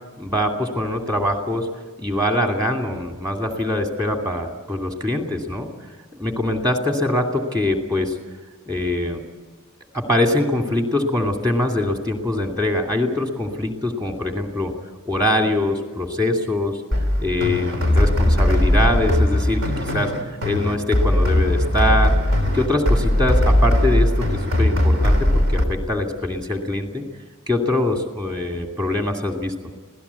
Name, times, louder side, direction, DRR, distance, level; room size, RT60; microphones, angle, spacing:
voice 1, 0.2-1.7 2.0-5.7 6.2-8.2 8.7-9.2 9.9-14.7 15.0-16.8 17.2-20.1 20.4-22.2 22.5-24.3 24.6-27.0 27.5-29.5, left 1 dB, 20° right, 3 dB, 2.4 m, -23 dB
sound 1, 16.9-25.6, left 1 dB, 65° right, 3.3 m, -19 dB
26.5 x 17.0 x 8.3 m, 1.4 s
head